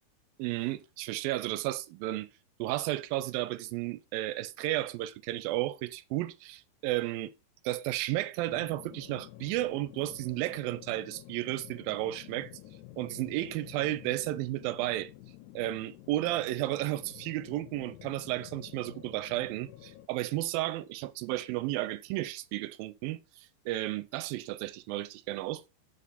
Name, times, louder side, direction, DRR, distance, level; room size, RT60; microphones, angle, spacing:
voice 1, 0.4-2.3 2.6-7.3 7.6-12.5 13.0-15.1 15.6-25.7, right 16 dB, 85° right, 2.4 m, -33 dB
sound 1, 8.4-20.1, left 15 dB, 90° left, 1.7 m, -50 dB
7.5 x 7.3 x 4.1 m
omnidirectional pair, 4.2 m